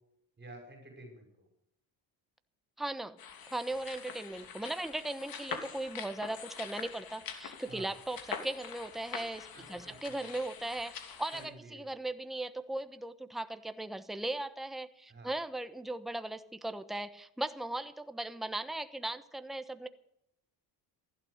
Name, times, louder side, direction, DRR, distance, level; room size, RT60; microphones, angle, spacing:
voice 1, 0.4-1.5 7.7-7.9 9.5-10.3 11.3-12.0 15.1-15.3, right 2 dB, 25° right, 4 dB, 5.8 m, -51 dB
voice 2, 2.8-3.2 3.5-19.9, right 2 dB, ahead, 10 dB, 1.0 m, -38 dB
sound 1, 3.2-11.5, left 7 dB, 55° left, 2.9 m, -45 dB
15.5 x 12.0 x 6.6 m, 0.78 s
cardioid pair, 100°, 43 cm